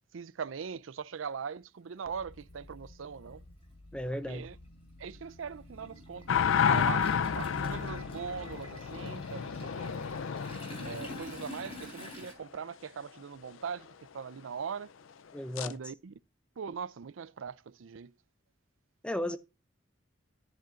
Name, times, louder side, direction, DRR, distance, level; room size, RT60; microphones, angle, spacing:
voice 1, 0.1-3.4 4.3-4.6 5.0-10.0 10.8-13.9 14.1-14.9 15.7-16.1 16.6-18.1, right 6 dB, 80° right, 0.5 m, -41 dB
Toilet flush, 1.8-1.9 3.2-3.4 3.7-12.3, equal, 30° left, 3.9 m, -48 dB
sound 1, 2.0-9.1, left 1 dB, 65° left, 3.9 m, -54 dB
voice 2, 3.9-4.4 15.3-15.7 19.0-19.4, left 1 dB, 5° left, 0.5 m, -34 dB
sound 2, 6.3-12.1 15.6-15.7, left 7 dB, 90° left, 0.5 m, -31 dB
10.5 x 10.5 x 2.5 m
head